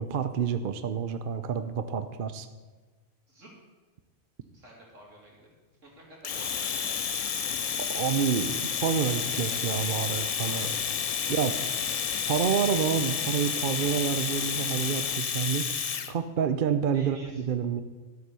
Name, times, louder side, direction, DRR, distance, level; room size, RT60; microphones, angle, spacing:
voice 1, 0.0-2.5 7.9-10.7 11.3-11.6 12.3-15.6 16.1-17.8, right 7 dB, 50° right, 10 dB, 0.8 m, -28 dB
voice 2, 4.5-5.5 5.8-6.9 10.4-10.8 11.2-12.3 16.9-17.5, right 1 dB, 85° right, -3 dB, 3.6 m, -51 dB
Domestic sounds home sounds, 6.2-16.1, left 7 dB, 50° left, 0.4 m, -30 dB
sound 1, 6.3-15.2, left 10 dB, 80° left, 1.0 m, -44 dB
13.0 x 8.0 x 6.9 m, 1.3 s
omnidirectional pair, 1.3 m